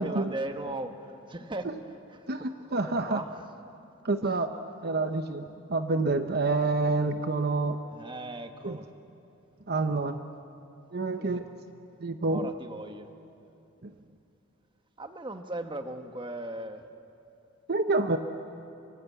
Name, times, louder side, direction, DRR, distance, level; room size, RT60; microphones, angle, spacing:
voice 1, 0.0-2.3 2.9-3.4 4.2-4.4 7.9-8.9 11.2-11.5 12.3-13.1 15.0-16.8, right 2 dB, 25° right, 7 dB, 1.3 m, -38 dB
voice 2, 2.3-3.2 4.0-4.5 4.8-7.8 8.6-8.8 9.7-10.2 10.9-11.4 12.0-12.5 17.7-18.2, right 3 dB, 50° right, 8 dB, 0.9 m, -28 dB
25.0 x 23.5 x 8.4 m, 2.7 s
head